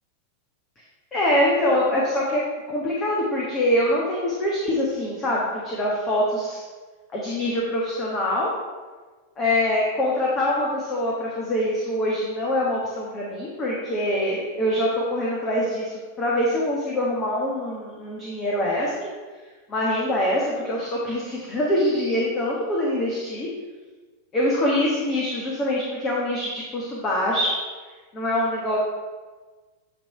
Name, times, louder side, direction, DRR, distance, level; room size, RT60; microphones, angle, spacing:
voice 1, 1.1-2.4 2.7-6.6 7.1-8.5 9.4-19.1 19.7-23.5 24.3-27.5 28.1-28.8, left 1 dB, 25° left, -4 dB, 1.4 m, -24 dB
9.0 x 3.4 x 5.6 m, 1.4 s
figure-of-eight pair, 90°, 0 cm